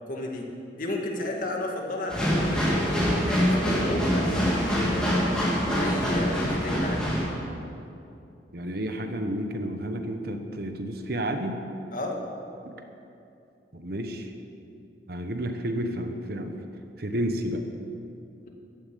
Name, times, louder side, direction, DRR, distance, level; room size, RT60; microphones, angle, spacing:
voice 1, 0.1-0.5 0.7-2.9 3.2-5.2 5.8-7.1 11.9-12.2, left 1 dB, 45° left, 0 dB, 2.1 m, -32 dB
sound 1, 2.1-7.2, equal, 5° left, 3.3 m, -25 dB
voice 2, 8.5-11.6 12.6-12.7 13.7-14.3 15.1-16.5 17.0-17.7, right 1 dB, 55° right, 6 dB, 1.2 m, -31 dB
14.5 x 9.7 x 8.4 m, 2.6 s
head